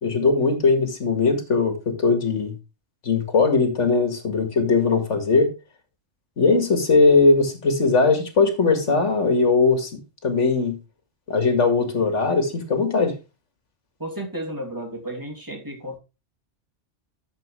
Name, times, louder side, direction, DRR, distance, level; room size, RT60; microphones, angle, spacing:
voice 1, 0.0-2.5 3.0-5.5 6.4-10.8 11.3-13.1, left 4 dB, 85° left, 7 dB, 2.3 m, -20 dB
voice 2, 14.0-16.0, right 1 dB, 15° right, 1 dB, 3.0 m, -33 dB
11.5 x 7.4 x 3.3 m, 0.28 s
omnidirectional pair, 1.2 m